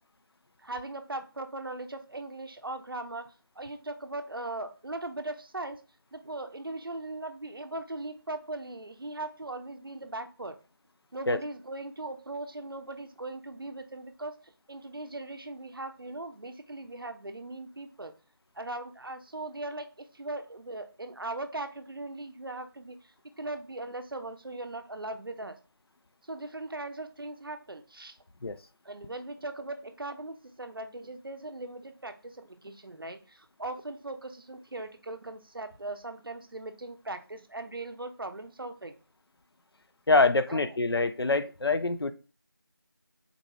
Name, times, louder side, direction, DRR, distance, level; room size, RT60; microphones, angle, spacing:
voice 1, 0.6-5.8 6.1-10.6 11.1-18.1 18.5-23.1 23.4-25.6 26.3-28.2 28.8-38.9 40.5-40.6, right 2 dB, 70° right, 8 dB, 0.5 m, -39 dB
voice 2, 40.1-42.1, left 3 dB, 85° left, 11 dB, 0.4 m, -25 dB
3.8 x 2.3 x 3.0 m, 0.34 s
figure-of-eight pair, 175°, 12 cm